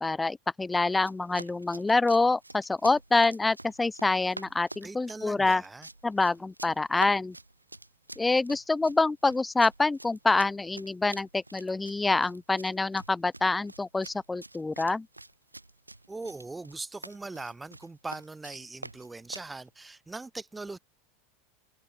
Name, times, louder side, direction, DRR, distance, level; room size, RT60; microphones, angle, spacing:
voice 1, 0.0-5.6 6.0-7.4 8.2-15.1, left 3 dB, 10° left, 0.3 m, -26 dB
Run, 0.9-19.5, right 2 dB, 85° right, 2.5 m, -47 dB
voice 2, 4.8-5.9 16.1-20.8, right 3 dB, 10° right, 2.3 m, -40 dB
open air
figure-of-eight pair, 80°, 0 cm